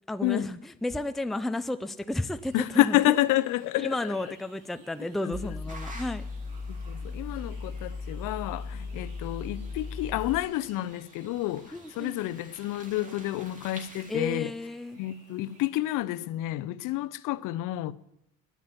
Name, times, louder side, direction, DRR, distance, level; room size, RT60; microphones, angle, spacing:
voice 1, 0.1-3.0 3.8-6.2 11.7-12.2 14.1-15.0, left 1 dB, ahead, 0.6 m, -32 dB
sound 1, 2.4-15.7, right 3 dB, 70° right, 4.4 m, -58 dB
voice 2, 2.5-4.1 5.2-5.5 6.9-14.5 15.0-17.9, left 16 dB, 70° left, 0.7 m, -29 dB
sound 2, 5.3-10.4, left 4 dB, 15° left, 1.2 m, -37 dB
sound 3, 5.7-14.2, right 2 dB, 25° right, 2.6 m, -51 dB
10.5 x 8.5 x 9.2 m
supercardioid pair, 80°, 33 cm